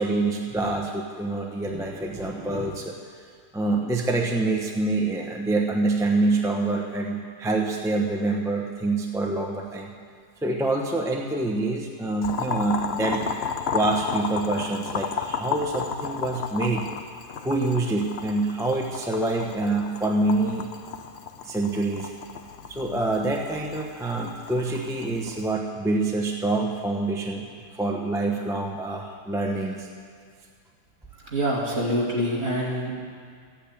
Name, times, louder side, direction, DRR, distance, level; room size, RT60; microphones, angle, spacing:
voice 1, 0.0-3.0 3.5-9.9 10.4-13.2 13.7-16.9 17.4-20.7 21.4-22.1 22.7-29.9, right 2 dB, 5° right, 0 dB, 0.7 m, -26 dB
Boiling, 12.2-25.5, left 6 dB, 50° left, 0.8 m, -33 dB
voice 2, 31.3-32.9, equal, 40° right, -4 dB, 2.8 m, -25 dB
13.5 x 8.9 x 8.6 m, 2.1 s
omnidirectional pair, 1.8 m